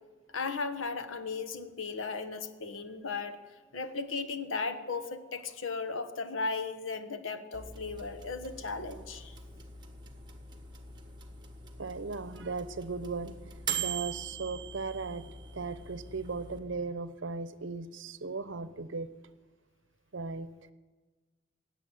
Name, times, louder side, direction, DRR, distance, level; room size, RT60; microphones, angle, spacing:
voice 1, 0.3-3.4 3.7-9.4, left 4 dB, 85° left, 1.1 m, -36 dB
sound 1, 7.5-16.6, right 6 dB, 20° right, 1.5 m, -42 dB
voice 2, 11.8-19.1 20.1-20.5, right 4 dB, 70° right, 0.8 m, -37 dB
17.0 x 8.3 x 9.7 m
head